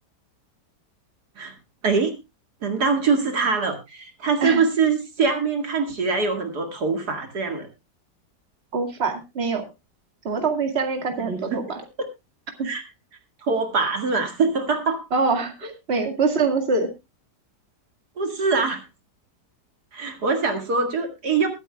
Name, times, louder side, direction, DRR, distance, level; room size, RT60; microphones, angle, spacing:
voice 1, 1.8-2.1 2.6-7.7 11.2-11.6 12.6-12.8 13.4-15.0 18.2-18.8 19.9-21.5, right 4 dB, 65° right, 5 dB, 2.6 m, -23 dB
voice 2, 8.7-9.6 10.2-11.8 12.6-12.7 15.1-16.9, right 4 dB, 40° right, 4 dB, 2.3 m, -24 dB
22.5 x 9.1 x 2.3 m, 0.24 s
omnidirectional pair, 1.8 m